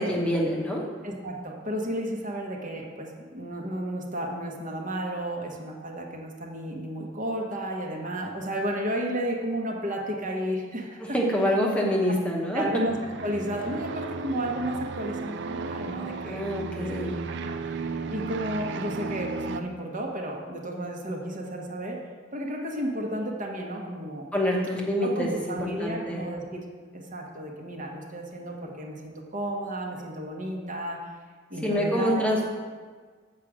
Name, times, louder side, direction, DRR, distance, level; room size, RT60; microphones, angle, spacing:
voice 1, 0.0-0.8 11.0-12.6 16.2-17.2 24.3-26.3 31.6-32.4, equal, 5° left, -2 dB, 0.9 m, -26 dB
voice 2, 1.0-11.2 12.5-13.0 13.2-16.4 16.8-16.9 17.3-22.0 22.3-24.3 25.0-26.6 26.9-31.0 31.5-32.2, right 1 dB, 45° right, 0 dB, 1.2 m, -32 dB
sound 1, 12.9-19.6, right 4 dB, 65° right, 0.4 m, -34 dB
7.5 x 5.0 x 7.3 m, 1.5 s
head